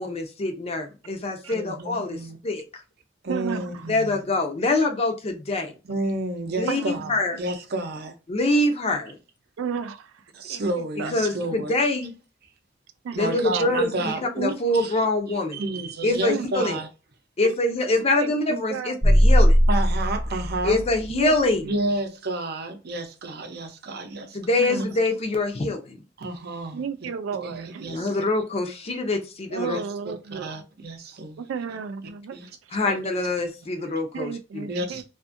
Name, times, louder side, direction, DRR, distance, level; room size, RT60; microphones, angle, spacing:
voice 1, 0.0-2.2 2.4-2.6 3.9-5.7 6.6-7.4 8.3-9.2 11.1-12.1 13.2-15.6 16.0-16.8 17.4-19.6 20.6-21.6 24.3-26.0 27.9-29.8 32.7-34.7, left 2 dB, 35° left, 0.5 m, -25 dB
voice 2, 1.5-2.4 3.2-4.2 5.8-8.1 10.3-11.7 13.1-15.0 15.3-16.9 19.7-20.8 21.6-24.4 26.2-26.8 27.4-28.2 29.6-31.5 32.3-32.5 32.8-33.0 34.7-35.0, right 2 dB, 55° right, 0.6 m, -31 dB
voice 3, 3.3-3.9 6.7-7.0 9.6-10.2 10.5-10.6 11.0-11.1 13.0-13.8 16.3-16.5 17.4-17.5 18.2-19.0 21.1-21.3 24.6-24.9 26.7-27.9 29.5-30.5 31.4-32.4 32.7-32.8 34.1-35.0, right 6 dB, 85° right, 0.3 m, -32 dB
sound 1, 19.0-21.4, equal, 10° right, 0.8 m, -19 dB
2.5 x 2.5 x 2.4 m
head